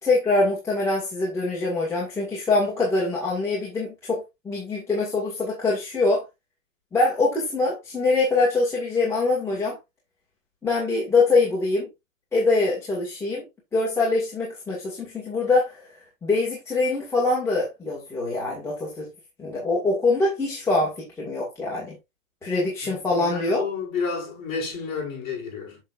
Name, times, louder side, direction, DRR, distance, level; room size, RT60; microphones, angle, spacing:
voice 1, 0.0-6.2 6.9-9.8 10.6-11.9 12.3-13.4 13.7-15.8 16.2-19.1 19.4-22.0 22.4-23.6, left 3 dB, 5° left, 1.8 m, -24 dB
voice 2, 22.8-25.8, left 5 dB, 20° left, 5.1 m, -31 dB
7.3 x 6.8 x 2.5 m
hypercardioid pair, 160°, 40 cm